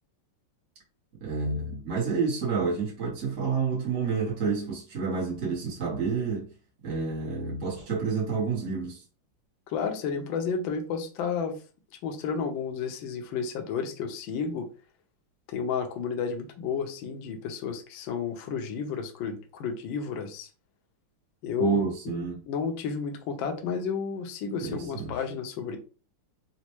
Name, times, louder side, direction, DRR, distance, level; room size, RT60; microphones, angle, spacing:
voice 1, 1.2-6.5 6.8-9.0 21.6-22.4 24.6-25.2, right 5 dB, 45° right, 1.0 m, -29 dB
voice 2, 9.7-11.6 12.0-14.7 15.5-20.5 21.4-21.8 22.1-25.8, left 6 dB, 70° left, 1.3 m, -32 dB
4.2 x 2.2 x 2.9 m
omnidirectional pair, 2.4 m